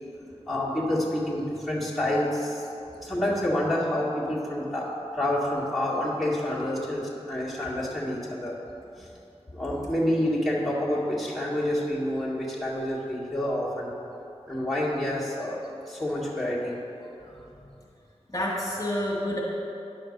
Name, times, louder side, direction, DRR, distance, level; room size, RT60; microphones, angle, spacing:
voice 1, 0.0-2.7 3.0-8.5 9.5-13.9 14.5-15.6 15.9-16.8, left 1 dB, ahead, -8 dB, 2.1 m, -28 dB
voice 2, 17.2-17.7 18.3-19.4, left 1 dB, 30° left, -6 dB, 1.8 m, -30 dB
10.5 x 4.3 x 6.7 m, 2.8 s
wide cardioid pair, 60°, 11 cm